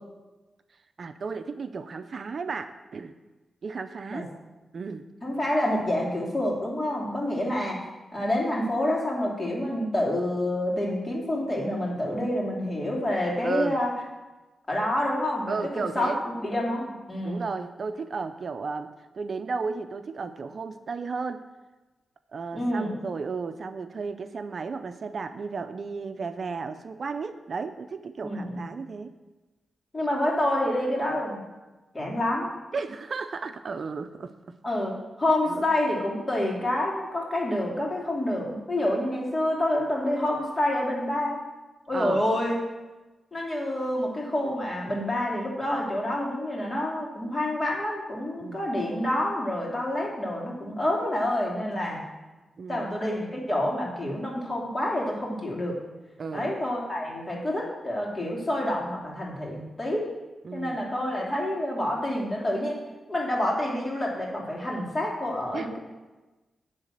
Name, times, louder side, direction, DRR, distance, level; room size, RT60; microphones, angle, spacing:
voice 1, 1.0-3.1 3.6-4.3 4.7-5.0 13.4-13.8 15.5-16.2 17.2-21.4 22.3-29.1 32.7-34.5 35.5-35.7 41.9-42.2 48.4-48.7 52.6-52.9 56.2-56.5 60.4-60.8 65.5-65.7, right 4 dB, 60° right, 9 dB, 0.5 m, -34 dB
voice 2, 5.2-7.8 8.1-13.9 14.7-17.4 22.5-22.9 28.2-28.6 29.9-31.4 31.9-32.5 34.6-41.4 41.9-42.6 43.3-52.0 52.7-55.7 56.3-60.1 60.5-62.8 63.1-65.8, left 1 dB, 25° left, -3 dB, 2.9 m, -28 dB
10.5 x 4.0 x 7.6 m, 1.2 s
cardioid pair, 75°, 0 cm